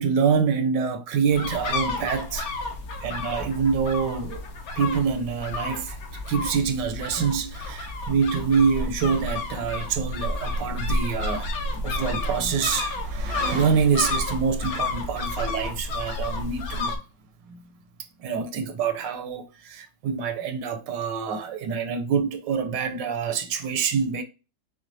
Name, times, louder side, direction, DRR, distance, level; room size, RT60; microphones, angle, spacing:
voice 1, 0.0-2.5 3.0-4.4 4.8-6.0 6.3-17.0 17.5-17.6 18.2-24.2, right 6 dB, 80° right, 1.2 m, -26 dB
sound 1, 1.3-17.0, left 2 dB, 60° left, 1.1 m, -31 dB
6.1 x 2.3 x 2.6 m
omnidirectional pair, 2.0 m